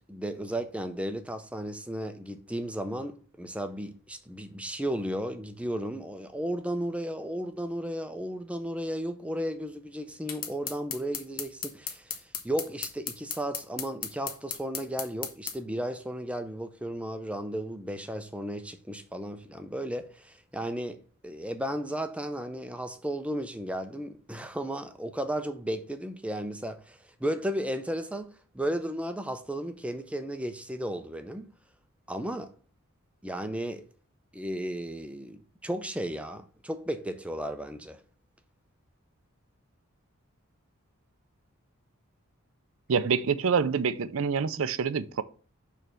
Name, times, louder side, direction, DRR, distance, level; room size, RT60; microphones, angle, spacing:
voice 1, 0.0-21.0 21.2-31.5 32.1-32.5 33.2-33.8 34.3-38.0, right 1 dB, 5° right, 0.5 m, -34 dB
sound 1, 10.3-15.6, left 7 dB, 40° left, 1.0 m, -35 dB
voice 2, 42.9-45.2, right 6 dB, 65° right, 0.4 m, -26 dB
6.7 x 3.3 x 6.1 m
head